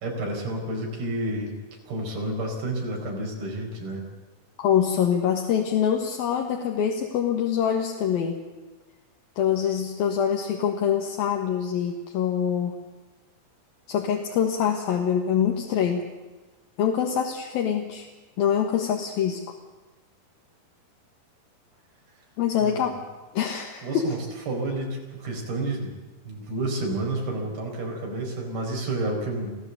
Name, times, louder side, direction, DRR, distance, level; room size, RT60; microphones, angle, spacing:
voice 1, 0.0-1.5 1.9-4.0 22.6-23.0 23.8-24.2 24.5-25.9 26.3-29.5, right 2 dB, 90° right, 0 dB, 6.4 m, -30 dB
voice 2, 4.6-8.4 9.4-12.8 13.9-16.1 16.8-18.1 18.4-19.4 22.4-23.0 23.3-24.2, left 8 dB, 75° left, 1 dB, 3.3 m, -24 dB
25.5 x 15.5 x 8.2 m, 1.2 s
omnidirectional pair, 4.3 m